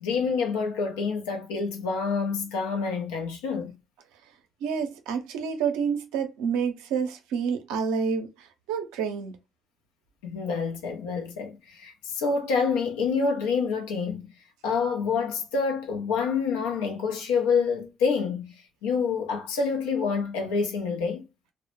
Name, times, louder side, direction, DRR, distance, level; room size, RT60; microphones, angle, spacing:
voice 1, 0.0-3.8 10.2-14.3 14.6-18.5 18.8-21.2, left 5 dB, 85° left, 0.5 m, -27 dB
voice 2, 4.6-9.4, right 6 dB, 80° right, 0.5 m, -29 dB
2.1 x 2.0 x 2.9 m
hypercardioid pair, 50°, 0 cm